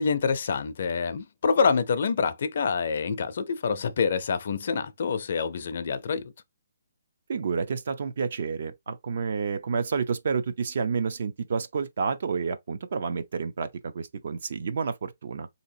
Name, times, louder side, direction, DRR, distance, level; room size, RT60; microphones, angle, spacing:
voice 1, 0.0-6.3, left 5 dB, 50° left, 0.5 m, -26 dB
voice 2, 7.3-15.5, right 5 dB, 50° right, 0.5 m, -29 dB
3.8 x 2.8 x 2.6 m
hypercardioid pair, 170°, 0 cm